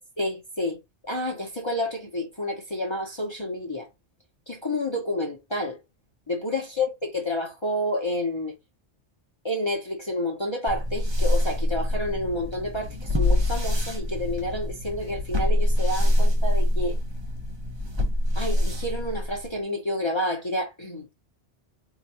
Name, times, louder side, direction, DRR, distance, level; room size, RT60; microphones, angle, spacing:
voice 1, 0.2-0.8 1.0-3.9 4.5-5.8 6.3-8.5 9.4-17.0 18.3-21.0, left 1 dB, 25° left, 0.9 m, -29 dB
sound 1, 10.7-19.6, left 1 dB, 25° right, 0.8 m, -25 dB
4.8 x 2.5 x 2.9 m
omnidirectional pair, 1.2 m